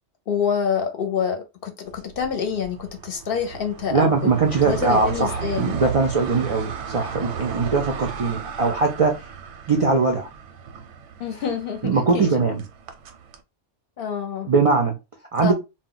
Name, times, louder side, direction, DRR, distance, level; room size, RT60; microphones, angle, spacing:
voice 1, 0.3-4.3 4.6-5.8 11.2-12.3 14.0-14.5 15.4-15.5, left 7 dB, 60° left, 0.7 m, -27 dB
sound 1, 1.9-13.4, right 7 dB, 90° right, 0.9 m, -35 dB
voice 2, 3.9-9.1 9.7-10.3 11.8-12.6 14.5-14.9 15.3-15.5, right 4 dB, 55° right, 0.3 m, -21 dB
2.2 x 2.1 x 3.7 m
omnidirectional pair, 1.2 m